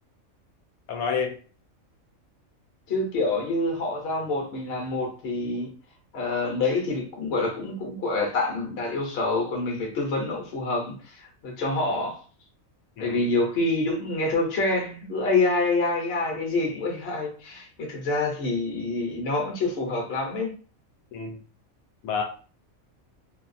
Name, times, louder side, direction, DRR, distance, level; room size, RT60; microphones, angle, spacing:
voice 1, 0.9-1.3 13.0-13.3 21.1-21.4 22.0-22.2, left 6 dB, 90° left, 3 dB, 1.0 m, -28 dB
voice 2, 2.9-5.7 6.1-12.2 13.0-20.5, left 2 dB, 55° left, 1 dB, 0.9 m, -27 dB
2.7 x 2.3 x 2.5 m, 0.40 s
omnidirectional pair, 1.4 m